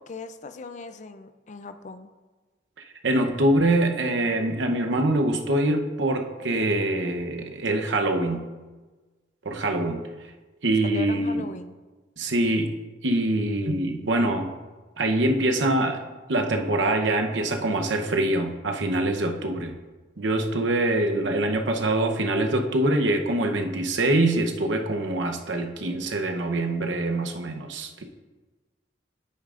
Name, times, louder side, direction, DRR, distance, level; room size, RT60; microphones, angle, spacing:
voice 1, 0.1-2.1 10.8-11.8, left 3 dB, 40° left, 10 dB, 0.5 m, -39 dB
voice 2, 3.0-8.5 9.4-10.1 10.6-11.5 12.2-12.8 13.0-14.5 15.0-16.0 16.3-19.8 20.2-28.0, right 1 dB, 80° right, 4 dB, 0.9 m, -24 dB
10.0 x 8.8 x 2.5 m, 1.3 s
head